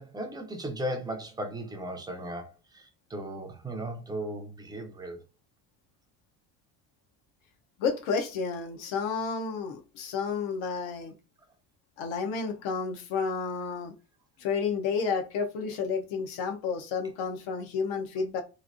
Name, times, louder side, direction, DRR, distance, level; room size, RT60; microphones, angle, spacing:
voice 1, 0.0-5.2, right 1 dB, 10° right, 0.3 m, -36 dB
voice 2, 7.8-11.1 12.0-13.9 14.4-18.4, left 5 dB, 80° left, 0.9 m, -31 dB
3.1 x 2.5 x 2.5 m
cardioid pair, 150°, 46 cm